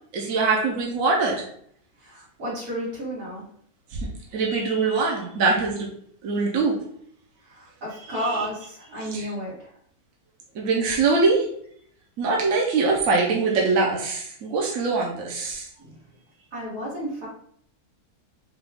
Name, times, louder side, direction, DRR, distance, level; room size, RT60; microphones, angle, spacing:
voice 1, 0.1-1.4 3.9-4.1 4.3-5.9 6.2-6.7 8.2-8.4 9.1-9.2 10.5-11.5 12.2-15.7, right 4 dB, 65° right, -1 dB, 1.2 m, -23 dB
voice 2, 2.0-3.4 7.4-9.7 15.8-16.0 16.5-17.3, equal, 90° right, -6 dB, 2.5 m, -32 dB
5.9 x 2.4 x 3.5 m, 0.65 s
omnidirectional pair, 1.6 m